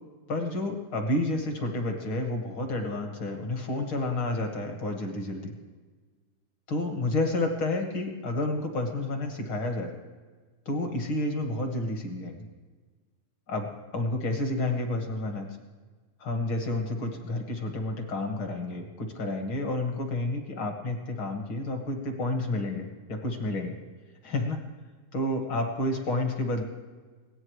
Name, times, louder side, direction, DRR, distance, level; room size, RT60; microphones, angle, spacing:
voice 1, 0.3-5.5 6.7-9.9 10.6-12.5 13.5-13.7 13.9-15.6 16.2-23.7 24.2-24.6 25.1-26.6, left 2 dB, 50° left, 3 dB, 1.6 m, -30 dB
23.0 x 17.5 x 3.2 m, 1.4 s
omnidirectional pair, 4.4 m